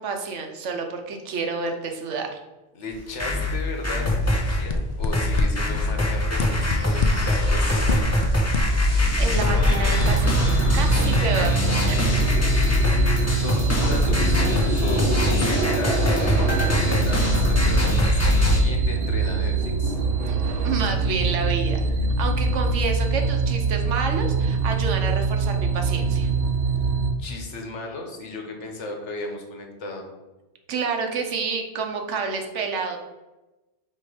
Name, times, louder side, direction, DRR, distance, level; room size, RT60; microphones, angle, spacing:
voice 1, 0.0-2.3 8.8-12.3 20.3-21.8 22.2-26.3 30.7-33.0, right 4 dB, 80° right, 4 dB, 1.2 m, -29 dB
voice 2, 2.7-8.0 13.4-20.0 27.2-30.1, left 2 dB, 75° left, 2 dB, 1.4 m, -35 dB
sound 1, 2.9-4.6 5.1-18.6, left 1 dB, 15° left, 0.8 m, -22 dB
sound 2, 4.0-10.6, left 2 dB, 50° left, 0.5 m, -28 dB
sound 3, 10.0-27.1, right 4 dB, 60° right, 0.9 m, -24 dB
4.5 x 4.5 x 4.9 m, 1.1 s
omnidirectional pair, 1.2 m